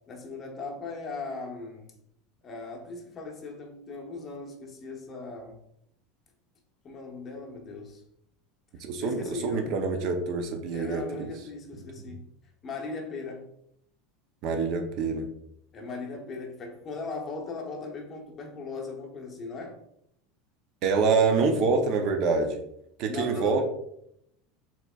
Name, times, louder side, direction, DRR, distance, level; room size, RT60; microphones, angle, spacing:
voice 1, 0.1-1.9 2.4-5.6 6.8-8.0 9.0-9.7 10.7-12.3 12.6-13.5 15.7-19.8 23.1-23.6, left 3 dB, 30° left, 1 dB, 0.8 m, -38 dB
voice 2, 8.8-11.3 14.4-15.3 20.8-22.6 23.0-23.6, right 4 dB, 50° right, 5 dB, 0.6 m, -26 dB
4.4 x 3.7 x 2.3 m, 0.75 s
supercardioid pair, 140°, 0 cm